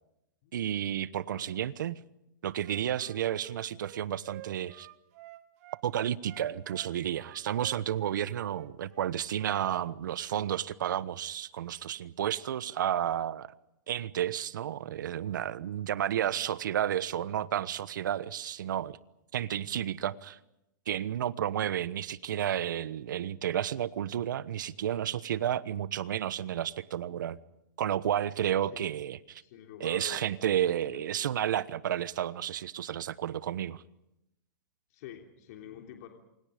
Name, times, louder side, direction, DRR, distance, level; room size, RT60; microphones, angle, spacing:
voice 1, 0.5-2.0 2.4-4.9 5.8-13.5 13.9-19.0 19.3-20.4 20.9-27.4 27.8-29.2 29.8-33.8, right 10 dB, 75° right, 17 dB, 1.2 m, -31 dB
voice 2, 1.2-1.6 28.7-29.0 29.4-30.3 30.9-31.1 34.9-36.1, left 10 dB, 55° left, 3 dB, 3.3 m, -47 dB
Wind instrument woodwind instrument, 2.6-5.8 6.2-9.6, right 17 dB, 50° right, 1.8 m, -50 dB
28.0 x 25.0 x 5.1 m, 0.85 s
hypercardioid pair, 140°, 10 cm